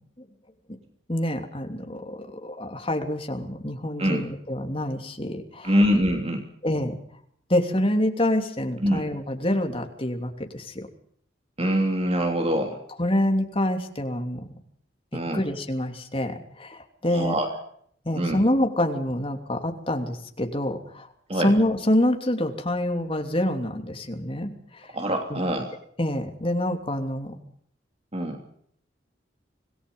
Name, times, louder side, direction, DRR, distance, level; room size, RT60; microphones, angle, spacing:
voice 1, 1.1-5.7 6.6-6.9 7.5-10.9 13.0-14.5 15.3-17.4 18.0-21.1 21.3-24.9 25.3-25.4 26.0-27.3, left 1 dB, 30° left, 4 dB, 3.0 m, -26 dB
voice 2, 5.6-6.4 8.8-9.0 11.6-12.8 15.1-15.4 17.1-17.5 18.1-18.4 21.3-21.5 24.9-25.7 28.1-28.4, equal, 35° right, 4 dB, 2.9 m, -24 dB
26.0 x 19.0 x 5.5 m, 0.65 s
head